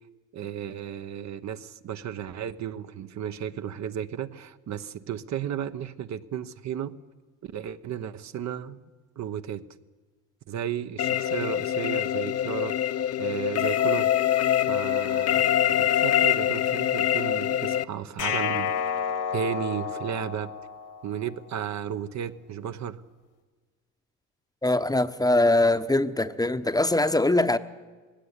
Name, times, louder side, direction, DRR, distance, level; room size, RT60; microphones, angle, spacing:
voice 1, 0.3-6.9 7.4-8.9 9.2-9.6 10.5-12.8 13.2-14.1 14.6-18.7 19.3-20.5 21.0-23.0, right 9 dB, 60° right, 1.1 m, -34 dB
sound 1, 11.0-17.8, left 11 dB, 50° left, 0.9 m, -24 dB
sound 2, 18.2-21.3, left 7 dB, 70° left, 2.0 m, -30 dB
voice 2, 24.6-27.6, left 2 dB, 10° left, 0.9 m, -22 dB
19.5 x 17.0 x 9.8 m
cardioid pair, 85°, 32 cm